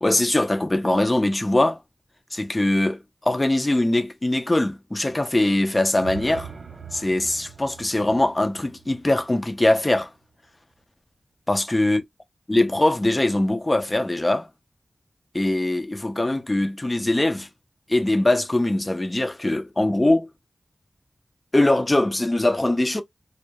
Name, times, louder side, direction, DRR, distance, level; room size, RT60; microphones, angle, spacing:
voice 1, 0.0-1.8 2.3-6.5 6.9-10.1 11.5-12.0 12.5-14.5 15.3-17.5 17.9-20.3 21.5-23.0, left 1 dB, 25° left, 0.4 m, -22 dB
sound 1, 6.0-9.9, right 6 dB, 90° right, 0.6 m, -41 dB
2.2 x 2.1 x 2.7 m
wide cardioid pair, 85°, 0 cm